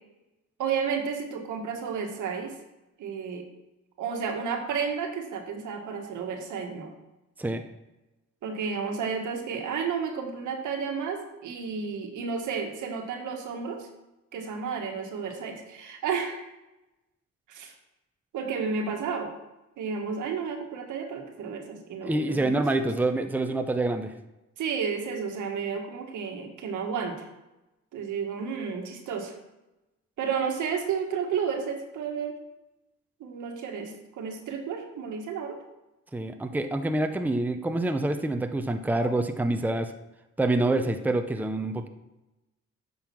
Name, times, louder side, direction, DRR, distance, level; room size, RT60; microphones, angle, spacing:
voice 1, 0.6-2.6 3.0-3.4 4.0-6.9 8.4-13.9 14.3-16.4 17.5-17.7 18.3-19.3 19.8-22.9 24.6-27.3 27.9-29.4 30.2-32.4 33.2-35.6, right 6 dB, 80° right, 3 dB, 1.7 m, -32 dB
voice 2, 22.0-24.1 36.1-39.9 40.4-41.9, right 2 dB, 5° right, 6 dB, 0.7 m, -26 dB
8.9 x 5.6 x 6.1 m, 0.98 s
cardioid pair, 90°, 30 cm